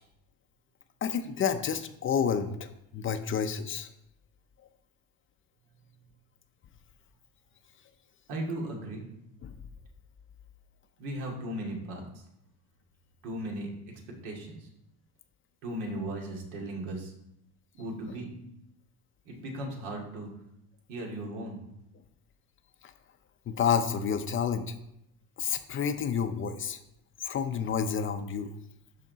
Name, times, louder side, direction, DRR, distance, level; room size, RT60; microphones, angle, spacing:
voice 1, 1.0-2.5 2.9-3.9 23.5-24.7 25.4-26.8 27.2-28.5, left 7 dB, 30° left, 9 dB, 0.5 m, -29 dB
voice 2, 8.3-9.0 11.0-12.2 13.2-13.7 14.2-14.7 15.6-17.1 17.7-18.3 19.2-20.3 20.9-21.6, right 1 dB, 80° right, 0 dB, 2.5 m, -36 dB
12.0 x 5.0 x 4.0 m, 0.81 s
cardioid pair, 140°, 39 cm